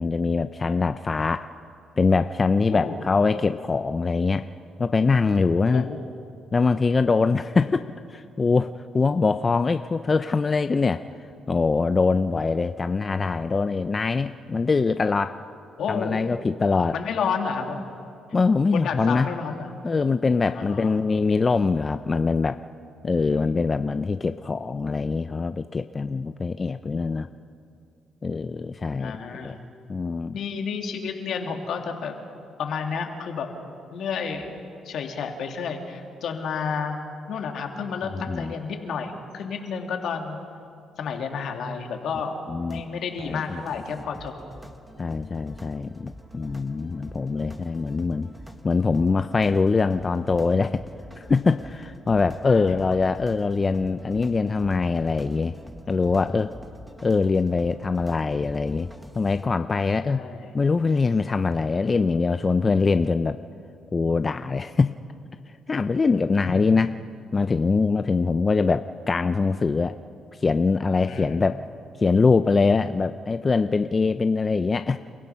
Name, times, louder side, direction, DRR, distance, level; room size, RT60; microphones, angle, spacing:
voice 1, 0.0-1.5 2.0-4.5 4.8-5.8 6.5-11.0 11.5-15.4 15.9-16.9 18.3-19.3 19.8-22.6 23.0-27.3 28.2-29.6 29.9-30.4 38.1-38.5 42.5-42.8 43.2-43.6 45.0-48.3 48.6-50.8 51.2-55.5 55.9-56.5 57.0-58.9 59.2-60.2 60.5-63.4 63.9-64.9 65.7-66.9 67.3-69.9 70.4-71.6 72.0-75.0, left 4 dB, 30° left, 10 dB, 0.5 m, -23 dB
voice 2, 15.8-16.3 16.9-17.8 18.7-19.8 20.5-21.0 23.4-23.9 29.0-29.6 30.3-32.2 32.6-33.5 33.9-34.6 34.8-37.0 37.3-40.4 41.0-42.4 42.7-44.4 52.4-53.0 60.1-60.5 66.4-66.5 71.1-71.4, left 6 dB, 70° left, 4 dB, 2.2 m, -31 dB
sound 1, 42.6-59.5, equal, 5° right, 1.5 m, -45 dB
29.5 x 16.0 x 5.7 m, 2.4 s
cardioid pair, 90°, 0 cm